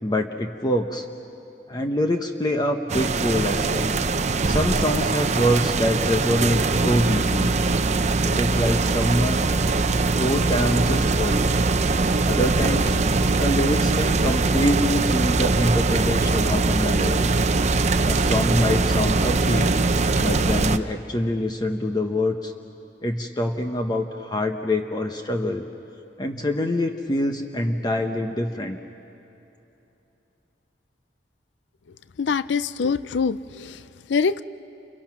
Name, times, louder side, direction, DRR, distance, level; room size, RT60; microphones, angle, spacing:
voice 1, 0.0-1.1 1.7-3.9 4.5-7.5 8.2-9.4 10.1-11.5 12.2-12.9 13.4-17.3 18.0-19.7 20.2-22.5 23.0-25.6 26.2-28.8, left 1 dB, 25° left, 5 dB, 0.9 m, -25 dB
sound 1, 2.9-20.8, right 3 dB, 40° right, 0.7 m, -22 dB
voice 2, 32.2-33.8 34.1-34.4, left 5 dB, 80° left, 15 dB, 0.5 m, -24 dB
30.0 x 28.5 x 6.0 m, 2.9 s
head